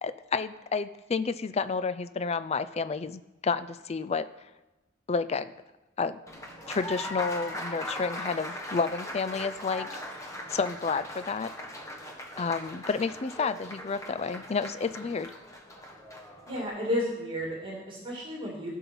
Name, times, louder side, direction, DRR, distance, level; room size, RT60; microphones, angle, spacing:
voice 1, 0.0-4.3 5.1-5.5 6.0-6.2 6.7-11.5 12.4-15.3, left 4 dB, 30° left, 13 dB, 0.4 m, -30 dB
Applause, 6.3-16.7, left 1 dB, 15° left, 1.2 m, -40 dB
voice 2, 16.5-18.8, left 1 dB, 25° right, -3 dB, 2.3 m, -32 dB
15.5 x 5.6 x 6.0 m, 1.0 s
head